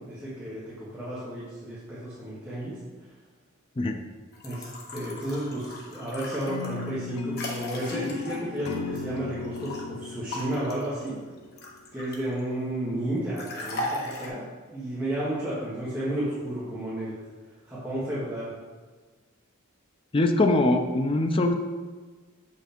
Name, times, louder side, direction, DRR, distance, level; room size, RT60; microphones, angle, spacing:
voice 1, 0.0-2.8 4.4-11.2 11.9-14.5 14.7-17.2 17.7-18.5, right 1 dB, 5° right, -11 dB, 1.5 m, -32 dB
sound 1, 4.3-9.8 10.3-12.4 13.4-14.3, left 1 dB, 50° left, 1.3 m, -37 dB
sound 2, 6.5-11.6, left 5 dB, 80° left, 0.6 m, -37 dB
voice 2, 20.1-21.5, left 2 dB, 25° left, 5 dB, 0.4 m, -22 dB
7.0 x 5.6 x 4.4 m, 1.4 s
head